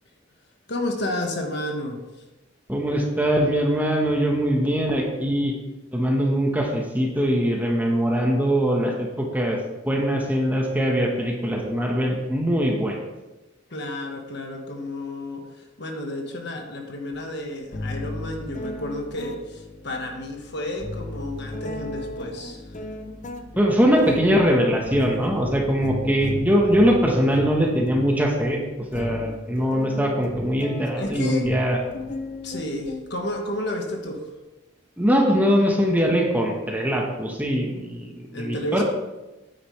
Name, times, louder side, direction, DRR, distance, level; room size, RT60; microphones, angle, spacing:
voice 1, 0.7-2.0 13.7-22.6 30.9-31.6 32.1-34.3 38.3-38.8, left 1 dB, 60° left, 3 dB, 1.4 m, -31 dB
voice 2, 2.7-5.5 5.9-9.6 9.8-13.0 23.6-28.6 28.9-31.8 35.0-38.8, equal, 10° right, 0 dB, 1.2 m, -22 dB
sound 1, 17.1-17.2 17.7-33.6, left 2 dB, 40° left, 0.7 m, -35 dB
9.3 x 9.3 x 3.3 m, 1.1 s
head